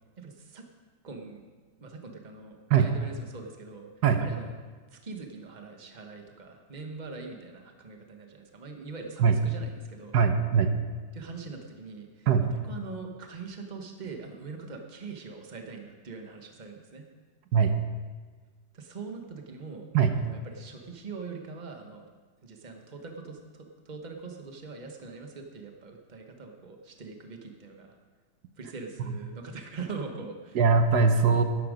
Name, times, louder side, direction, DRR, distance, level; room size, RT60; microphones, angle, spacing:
voice 1, 0.2-0.7 1.0-1.5 1.8-3.9 4.2-4.5 4.9-10.2 11.1-17.0 18.7-19.8 20.2-22.0 22.4-27.9 28.6-30.6, right 4 dB, 30° right, 3 dB, 1.2 m, -42 dB
voice 2, 10.1-10.7 12.3-12.5 17.5-17.7 19.9-20.1 30.5-31.4, right 6 dB, 80° right, 7 dB, 1.4 m, -21 dB
12.0 x 11.5 x 5.1 m, 1.4 s
omnidirectional pair, 1.8 m